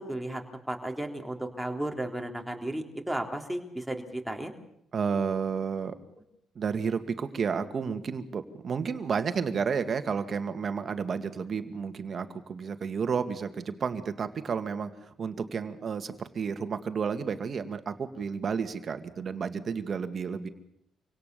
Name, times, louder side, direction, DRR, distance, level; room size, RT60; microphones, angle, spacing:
voice 1, 0.0-4.5, right 1 dB, 5° right, 2 dB, 3.7 m, -34 dB
voice 2, 4.9-6.0 6.6-20.5, right 6 dB, 50° right, 9 dB, 2.2 m, -31 dB
26.0 x 17.5 x 7.0 m, 0.74 s
cardioid pair, 90°, 0 cm